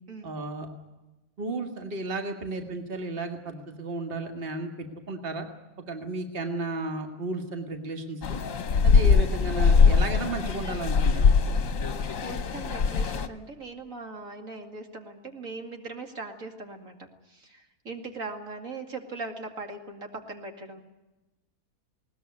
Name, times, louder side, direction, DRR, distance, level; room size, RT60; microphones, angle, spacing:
voice 1, 0.2-0.7 1.4-5.5 5.9-8.4 8.8-11.3, right 2 dB, 35° right, 4 dB, 2.1 m, -33 dB
sound 1, 8.2-13.3, left 5 dB, 60° left, 1.5 m, -22 dB
voice 2, 12.2-20.8, right 3 dB, 60° right, 4 dB, 2.7 m, -40 dB
20.5 x 19.0 x 9.6 m, 1.1 s
omnidirectional pair, 1.6 m